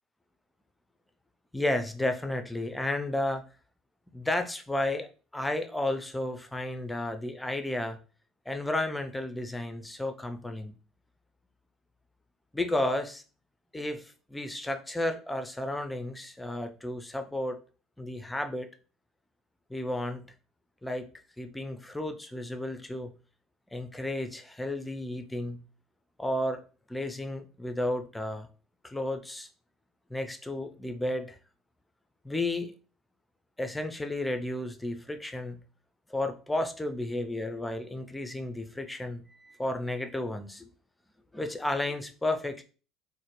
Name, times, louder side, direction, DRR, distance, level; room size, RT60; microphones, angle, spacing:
voice 1, 1.5-3.4 4.1-5.1 5.3-8.0 8.5-10.7 12.5-13.2 13.7-17.6 18.0-18.7 19.7-20.2 20.8-21.1 21.4-23.1 23.7-25.6 26.2-26.6 26.9-28.5 28.8-29.5 30.1-31.4 32.2-32.7 33.6-35.6 36.1-40.7 41.3-42.6, left 1 dB, 10° left, 0.5 m, -32 dB
3.9 x 2.1 x 3.2 m
hypercardioid pair, 65°, 0 cm